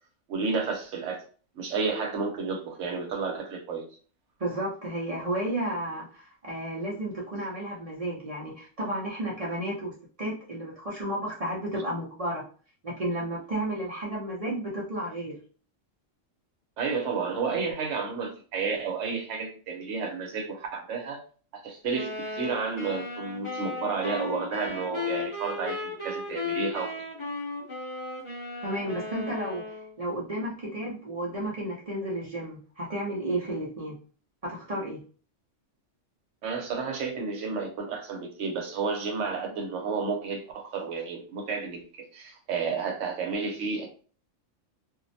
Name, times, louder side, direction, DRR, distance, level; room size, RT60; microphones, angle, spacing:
voice 1, 0.3-1.2 1.6-3.8 16.8-21.2 21.5-26.9 36.4-43.9, right 5 dB, 70° right, 3 dB, 1.0 m, -31 dB
voice 2, 4.4-12.4 12.8-15.4 28.6-29.7 30.0-34.0 34.4-35.0, right 1 dB, 45° right, -4 dB, 0.5 m, -32 dB
sound 1, 21.9-29.9, left 3 dB, 25° left, 0.8 m, -35 dB
2.5 x 2.0 x 2.6 m, 0.40 s
omnidirectional pair, 1.3 m